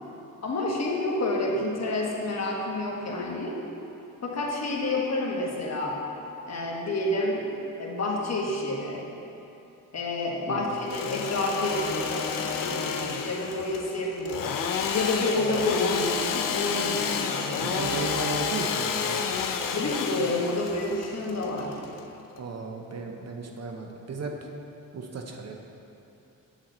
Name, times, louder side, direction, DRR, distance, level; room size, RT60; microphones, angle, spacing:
voice 1, 0.4-3.6 4.2-6.0 6.5-7.5 7.8-9.0 9.9-14.5 14.9-17.7 19.7-21.8, left 2 dB, 50° left, -2 dB, 1.3 m, -29 dB
Engine / Sawing, 10.7-22.4, left 6 dB, 75° left, 0.6 m, -30 dB
voice 2, 17.6-19.3 22.4-24.4 24.9-25.5, right 4 dB, 50° right, 2 dB, 0.7 m, -35 dB
7.7 x 7.3 x 3.9 m, 2.9 s
wide cardioid pair, 110°, 33 cm